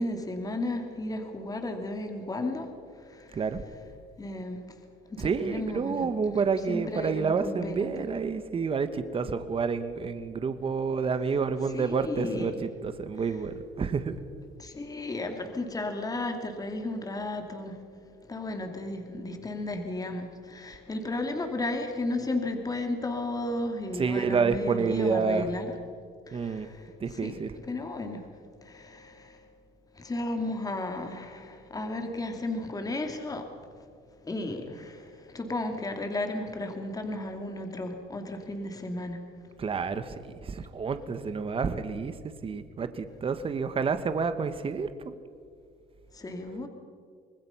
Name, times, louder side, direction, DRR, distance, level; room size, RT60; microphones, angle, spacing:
voice 1, 0.0-3.4 4.2-4.8 5.1-6.1 6.7-7.9 11.7-12.6 14.6-17.8 18.2-25.7 26.3-27.4 27.7-28.3 28.6-29.5 29.9-33.5 34.2-39.2 46.1-46.7, left 2 dB, 20° left, 5 dB, 2.6 m, -34 dB
voice 2, 3.3-3.6 5.2-14.2 23.9-25.5 26.3-26.7 27.0-27.5 39.6-42.1 42.4-45.1, right 5 dB, 35° right, 11 dB, 1.4 m, -29 dB
25.5 x 20.0 x 5.8 m, 2.2 s
cardioid pair, 110°, 17 cm